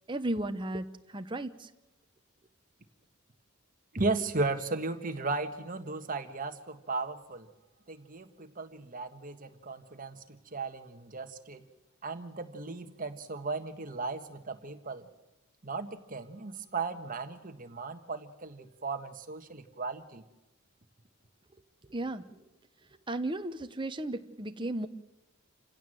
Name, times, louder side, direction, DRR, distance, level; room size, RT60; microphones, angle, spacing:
voice 1, 0.1-1.7 21.9-22.4 23.1-24.9, right 1 dB, 20° right, 8 dB, 0.9 m, -35 dB
voice 2, 3.9-7.5 7.9-11.6 12.0-15.1 15.6-20.2, right 3 dB, 40° right, 7 dB, 1.4 m, -36 dB
28.0 x 16.5 x 7.7 m, 0.98 s
head